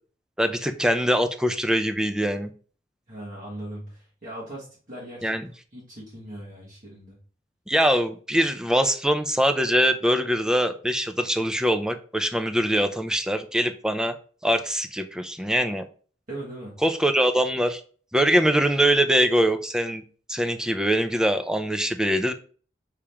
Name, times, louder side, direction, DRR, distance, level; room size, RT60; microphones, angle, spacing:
voice 1, 0.4-2.5 5.2-5.4 7.7-14.1 14.4-15.8 16.8-17.8 18.1-20.0 20.3-22.3, equal, 5° right, 8 dB, 0.4 m, -23 dB
voice 2, 3.1-5.4 5.7-7.2 16.3-16.8, right 1 dB, 45° right, -7 dB, 1.6 m, -39 dB
4.9 x 2.9 x 3.4 m, 0.40 s
head